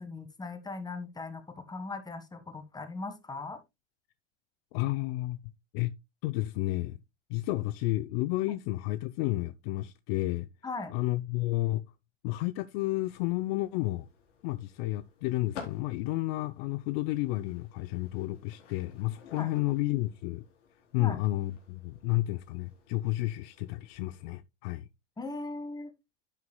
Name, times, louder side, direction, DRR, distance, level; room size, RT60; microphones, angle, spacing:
voice 1, 0.0-3.6 10.6-10.9 19.3-19.5 21.0-21.2 25.2-25.9, left 3 dB, 10° left, 1.6 m, -39 dB
voice 2, 4.7-5.9 6.2-7.0 7.3-10.5 10.9-11.9 12.2-14.1 14.4-20.4 20.9-24.9, left 18 dB, 55° left, 0.6 m, -31 dB
sound 1, 12.8-24.3, left 7 dB, 80° left, 3.9 m, -53 dB
10.5 x 8.4 x 2.2 m
supercardioid pair, 125°, 36 cm